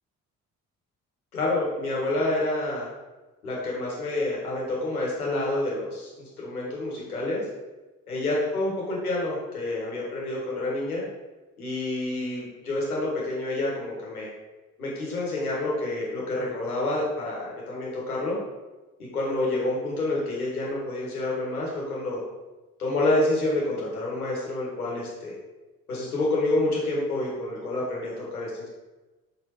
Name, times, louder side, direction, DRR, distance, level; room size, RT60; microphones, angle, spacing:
voice 1, 1.3-2.9 3.4-7.4 8.1-11.0 11.6-14.3 14.8-18.4 19.0-22.2 22.8-25.4 25.9-28.5, left 2 dB, 85° left, -4 dB, 1.6 m, -28 dB
6.4 x 6.1 x 3.0 m, 1.2 s
figure-of-eight pair, 45°, 43 cm